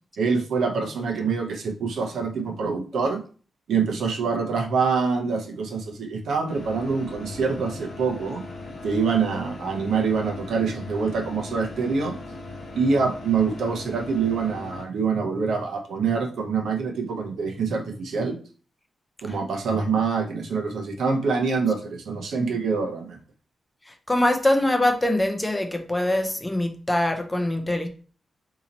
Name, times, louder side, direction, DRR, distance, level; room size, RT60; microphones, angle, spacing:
voice 1, 0.2-3.2 3.7-8.4 8.8-12.2 12.7-18.4 19.2-23.2, right 5 dB, 85° right, 2 dB, 0.7 m, -25 dB
sound 1, 6.5-14.8, left 2 dB, 45° left, 0.7 m, -39 dB
voice 2, 24.1-27.9, left 1 dB, 10° left, 5 dB, 0.4 m, -23 dB
2.8 x 2.8 x 3.9 m, 0.39 s
wide cardioid pair, 165°, 0 cm